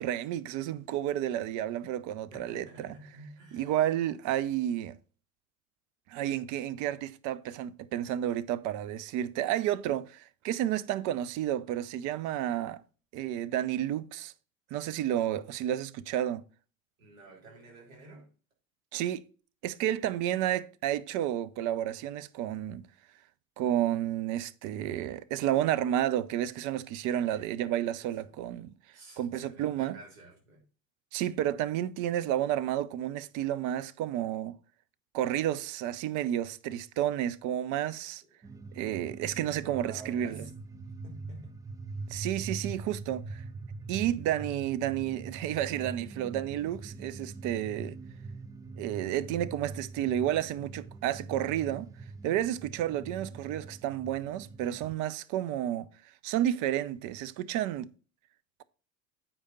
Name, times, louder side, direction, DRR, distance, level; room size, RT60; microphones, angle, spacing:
voice 1, 0.0-2.9 3.5-5.0 6.1-12.8 13.1-14.3 14.7-16.4 18.9-19.2 19.6-22.9 23.6-28.7 29.2-30.0 31.1-34.6 35.1-38.2 38.7-40.4 42.1-43.4 43.9-48.0 48.8-51.9 52.2-55.9 56.2-57.9, right 12 dB, 45° right, 0.6 m, -31 dB
voice 2, 2.3-3.8 17.0-18.3 27.1-27.5 28.0-28.3 28.9-30.6 38.5-38.7 39.7-40.5 41.0-41.6, right 2 dB, 75° right, 3.3 m, -50 dB
sound 1, 38.4-54.9, right 3 dB, 10° right, 0.3 m, -43 dB
8.7 x 4.9 x 4.1 m
hypercardioid pair, 75°, 40 cm